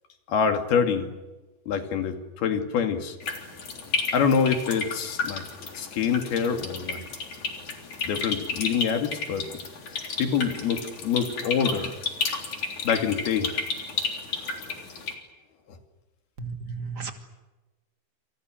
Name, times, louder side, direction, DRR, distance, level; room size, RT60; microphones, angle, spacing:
voice 1, 0.3-1.1 1.7-3.2 4.1-5.5 5.7-7.1 8.0-9.5 10.2-12.0 12.8-13.5 14.3-14.5, left 6 dB, 80° left, 6 dB, 4.4 m, -26 dB
sound 1, 3.2-15.1, left 4 dB, 50° left, 4.8 m, -32 dB
voice 2, 16.4-17.1, right 5 dB, 30° right, 6 dB, 2.5 m, -34 dB
28.5 x 28.0 x 6.5 m, 1.1 s
omnidirectional pair, 4.4 m